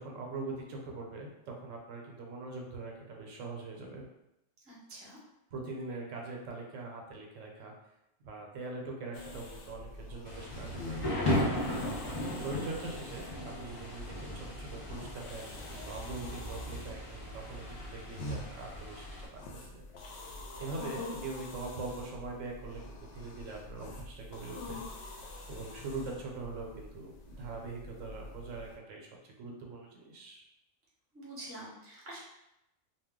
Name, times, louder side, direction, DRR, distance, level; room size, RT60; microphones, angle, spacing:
voice 1, 0.0-4.0 5.5-7.7 8.2-11.6 12.4-19.8 20.6-24.8 25.1-25.2 25.5-30.4, right 3 dB, 80° right, 0 dB, 0.9 m, -42 dB
voice 2, 4.6-5.2 31.1-32.2, right 1 dB, 15° right, -6 dB, 0.6 m, -47 dB
sound 1, 9.1-28.8, left 2 dB, 70° left, 0.8 m, -46 dB
Thunder / Rain, 10.3-19.3, left 1 dB, 40° left, 0.4 m, -37 dB
2.2 x 2.1 x 3.5 m, 0.87 s
omnidirectional pair, 1.3 m